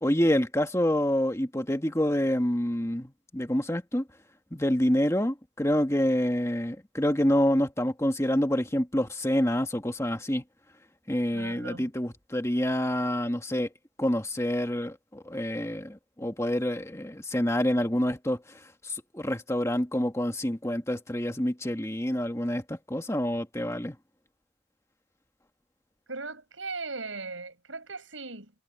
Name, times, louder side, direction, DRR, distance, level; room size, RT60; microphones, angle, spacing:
voice 1, 0.0-4.0 4.5-10.4 11.1-13.7 14.0-18.4 18.8-24.0, left 1 dB, 15° left, 1.8 m, -27 dB
voice 2, 11.3-11.9 26.1-28.5, right 3 dB, 80° right, 6.7 m, -38 dB
head